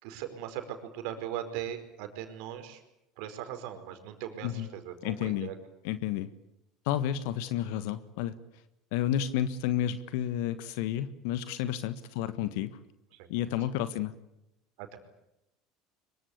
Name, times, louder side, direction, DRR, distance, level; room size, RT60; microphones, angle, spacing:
voice 1, 0.0-2.8 3.2-5.5 13.1-13.5 14.8-15.0, right 10 dB, 65° right, 8 dB, 4.7 m, -39 dB
voice 2, 5.0-5.5 5.8-6.3 6.8-8.3 8.9-12.7 13.3-14.1, left 11 dB, 65° left, 13 dB, 1.4 m, -31 dB
25.0 x 23.5 x 8.5 m, 0.87 s
hypercardioid pair, 70°, 0 cm